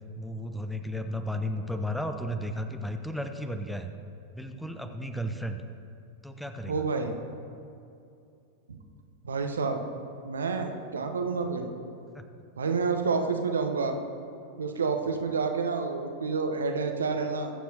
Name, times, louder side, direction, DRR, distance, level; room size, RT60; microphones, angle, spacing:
voice 1, 0.2-3.9 4.3-5.6 6.2-6.8 12.1-12.3, equal, ahead, 7 dB, 0.7 m, -34 dB
voice 2, 6.7-7.1 8.7-8.8 9.2-9.8 10.2-11.7 12.6-14.0 14.6-17.5, right 4 dB, 70° right, 5 dB, 0.9 m, -29 dB
21.5 x 7.4 x 2.9 m, 2.6 s
figure-of-eight pair, 90°, 0 cm